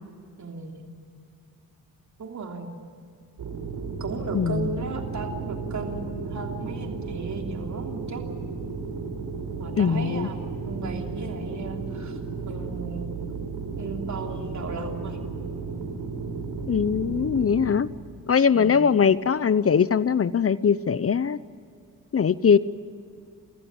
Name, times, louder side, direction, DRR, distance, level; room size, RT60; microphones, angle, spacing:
voice 1, 0.4-0.8 2.2-2.7 4.0-8.2 9.6-12.2 12.4-13.1 13.8-15.2 18.5-18.9, right 3 dB, 50° right, 3 dB, 3.2 m, -35 dB
sound 1, 3.4-17.7, right 4 dB, 65° right, 4.4 m, -34 dB
voice 2, 4.3-4.7 9.8-10.3 16.7-17.9 18.3-21.4 22.1-22.6, left 6 dB, 40° left, 17 dB, 0.8 m, -21 dB
30.0 x 15.0 x 9.7 m, 2.3 s
supercardioid pair, 65°, 37 cm